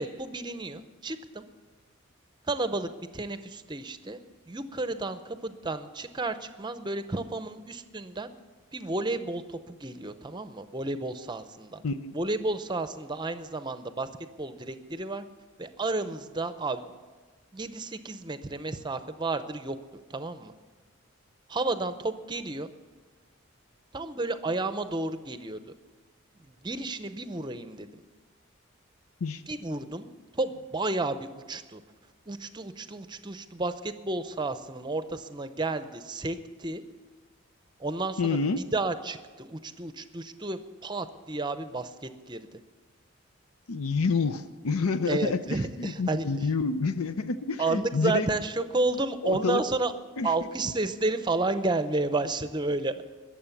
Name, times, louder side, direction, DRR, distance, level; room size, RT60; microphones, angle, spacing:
voice 1, 0.0-1.4 2.5-4.2 4.5-8.3 8.7-11.8 12.1-14.1 14.4-15.3 15.6-16.9 17.5-19.8 20.1-20.5 21.5-22.7 23.9-25.7 26.4-27.9 29.5-31.8 32.3-36.8 37.8-42.5 45.1-46.5 47.6-49.9 50.2-52.9, right 2 dB, 20° right, 11 dB, 0.6 m, -31 dB
voice 2, 11.8-12.2 29.2-29.4 38.2-38.6 43.7-45.4 45.8-48.3 49.2-49.6 50.2-50.3, left 4 dB, 85° left, 12 dB, 0.6 m, -28 dB
21.0 x 7.4 x 7.1 m, 1.4 s
head